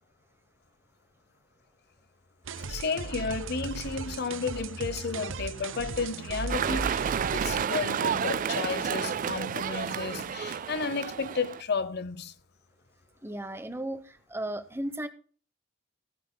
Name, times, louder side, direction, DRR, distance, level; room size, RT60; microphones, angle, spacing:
sound 1, 2.4-7.6, right 4 dB, 90° right, 0.6 m, -37 dB
voice 1, 2.6-12.3, left 5 dB, 55° left, 0.8 m, -33 dB
sound 2, 6.5-11.6, right 8 dB, 45° right, 0.3 m, -30 dB
voice 2, 13.2-15.1, right 1 dB, 10° right, 0.9 m, -35 dB
16.5 x 10.0 x 2.2 m
head